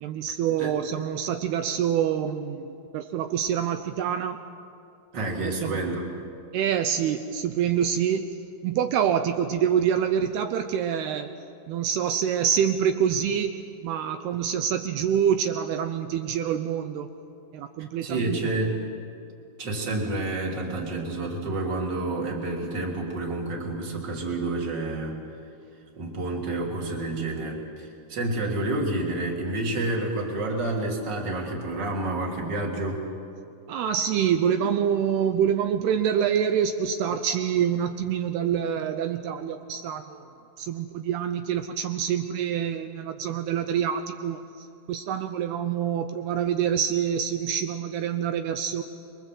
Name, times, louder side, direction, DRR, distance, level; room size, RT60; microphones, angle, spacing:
voice 1, 0.0-4.5 5.4-5.8 6.5-8.4 8.6-17.1 17.5-18.4 33.7-40.2 40.6-48.8, right 8 dB, 80° right, 8 dB, 2.4 m, -26 dB
voice 2, 5.1-6.0 18.0-18.8 19.6-25.2 26.0-33.0, right 2 dB, 25° right, -1 dB, 3.2 m, -29 dB
27.5 x 23.0 x 7.7 m, 2.6 s
omnidirectional pair, 5.5 m